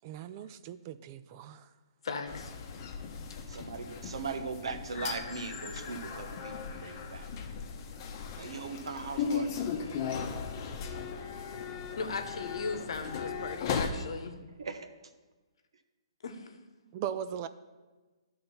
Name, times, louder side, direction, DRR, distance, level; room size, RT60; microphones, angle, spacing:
voice 1, 0.0-1.7 16.9-17.5, right 9 dB, 35° right, 12 dB, 0.3 m, -39 dB
voice 2, 2.0-2.5 11.9-14.4 16.2-16.5, left 4 dB, 65° left, 7 dB, 1.0 m, -37 dB
sound 1, 2.3-13.9, left 6 dB, 35° left, 0.8 m, -37 dB
voice 3, 3.5-7.3 8.4-9.6 14.6-14.9, right 4 dB, 70° right, 8 dB, 0.9 m, -39 dB
11.0 x 3.9 x 5.7 m, 1.3 s
hypercardioid pair, 140°, 3 cm